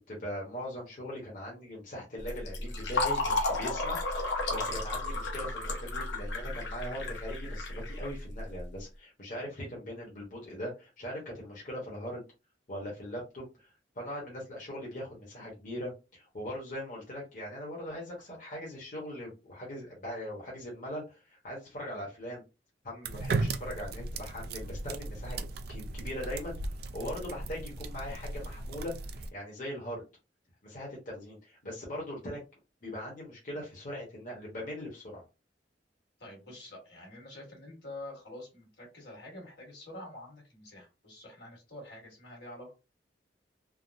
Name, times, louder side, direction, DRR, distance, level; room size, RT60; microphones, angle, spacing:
voice 1, 0.0-12.2 12.7-22.4 22.8-30.0 30.6-32.4 32.8-35.2, equal, 50° left, -3 dB, 1.0 m, -40 dB
Fill (with liquid), 2.2-8.6, left 2 dB, 85° left, 0.9 m, -33 dB
sound 1, 23.0-29.3, right 3 dB, 60° right, 0.4 m, -36 dB
voice 2, 36.2-42.7, left 1 dB, 65° left, -2 dB, 1.6 m, -47 dB
3.4 x 2.0 x 2.5 m, 0.28 s
head